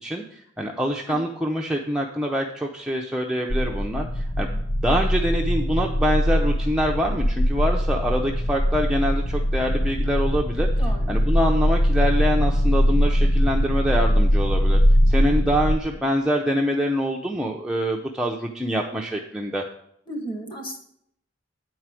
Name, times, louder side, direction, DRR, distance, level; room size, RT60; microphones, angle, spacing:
voice 1, 0.0-10.7 11.1-14.8 15.1-19.6, equal, 5° right, -1 dB, 0.6 m, -25 dB
sound 1, 3.5-15.8, equal, 60° left, 0.8 m, -21 dB
voice 2, 20.1-20.8, right 1 dB, 25° left, 3 dB, 1.8 m, -33 dB
9.0 x 4.7 x 7.5 m, 0.70 s
head